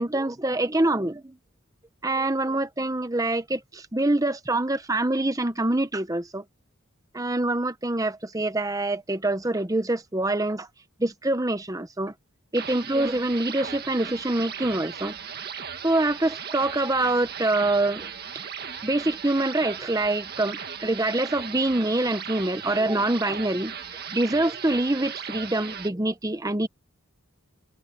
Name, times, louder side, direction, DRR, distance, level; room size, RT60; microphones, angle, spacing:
voice 1, 0.0-1.3 2.0-6.4 7.1-10.7 11.0-12.1 12.5-15.1 15.8-18.1 18.8-23.7 24.1-26.7, right 2 dB, 15° right, 0.9 m, -25 dB
sound 1, 12.5-25.9, right 7 dB, 45° right, 1.8 m, -37 dB
head